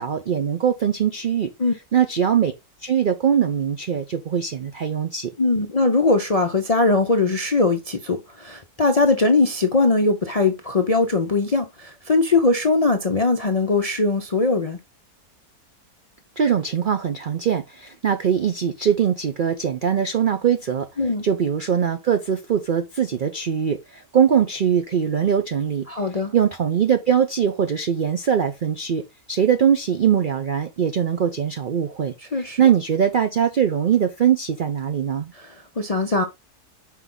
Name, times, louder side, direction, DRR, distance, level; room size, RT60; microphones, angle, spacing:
voice 1, 0.0-1.5 1.9-2.5 2.8-5.3 16.4-20.9 21.2-25.9 26.3-29.0 29.3-35.3, right 8 dB, 75° right, 0.4 m, -21 dB
voice 2, 5.4-14.8 21.0-21.3 25.9-26.3 32.3-32.6 35.3-36.2, left 3 dB, 50° left, 0.4 m, -20 dB
5.7 x 4.6 x 3.7 m
omnidirectional pair, 1.6 m